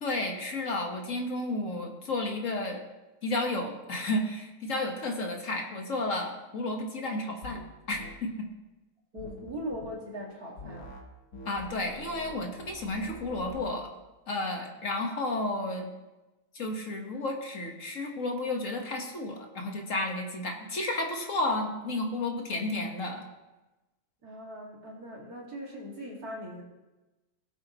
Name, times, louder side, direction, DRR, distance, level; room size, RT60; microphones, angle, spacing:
voice 1, 0.0-2.8 3.2-7.6 7.9-8.5 11.5-13.9 14.3-15.9 16.5-23.2, left 2 dB, 55° left, 2 dB, 1.7 m, -32 dB
sound 1, 7.4-7.6 7.9-8.1 9.2-9.9 10.6-11.0 11.3-13.8, left 2 dB, 70° left, 2.0 m, -45 dB
voice 2, 9.1-10.9 24.2-26.6, equal, 70° right, -2 dB, 2.8 m, -40 dB
18.0 x 7.8 x 3.0 m, 1.1 s
omnidirectional pair, 1.7 m